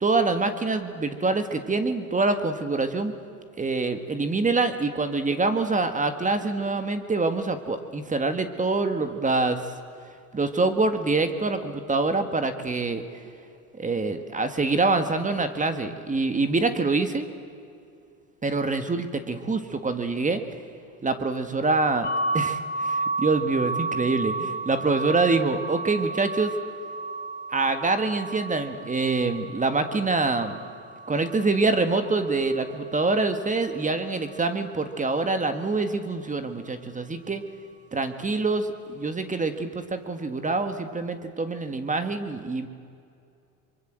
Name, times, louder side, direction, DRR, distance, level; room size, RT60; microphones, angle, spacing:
voice 1, 0.0-3.1 3.6-9.6 10.3-13.0 13.8-17.2 18.4-20.4 21.0-26.5 27.5-30.6 31.1-37.4 37.9-42.7, right 3 dB, 20° right, 9 dB, 1.8 m, -25 dB
sound 1, 22.0-33.8, right 3 dB, 25° left, 3.7 m, -33 dB
24.5 x 23.0 x 7.7 m, 2.4 s
supercardioid pair, 100°, 41 cm